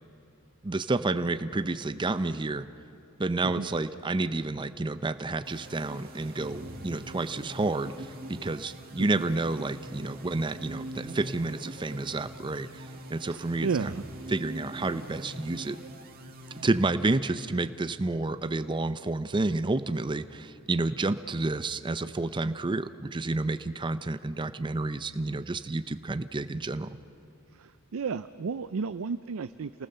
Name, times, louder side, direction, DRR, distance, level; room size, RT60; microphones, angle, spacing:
voice 1, 0.6-2.7 3.2-13.9 14.3-15.8 16.6-27.0, right 2 dB, 20° right, 12 dB, 0.5 m, -30 dB
sound 1, 5.4-17.2, right 1 dB, 45° right, 2.0 m, -43 dB
voice 2, 13.3-14.0 27.6-29.9, right 5 dB, 80° right, 12 dB, 0.5 m, -33 dB
27.5 x 19.0 x 6.7 m, 2.8 s
head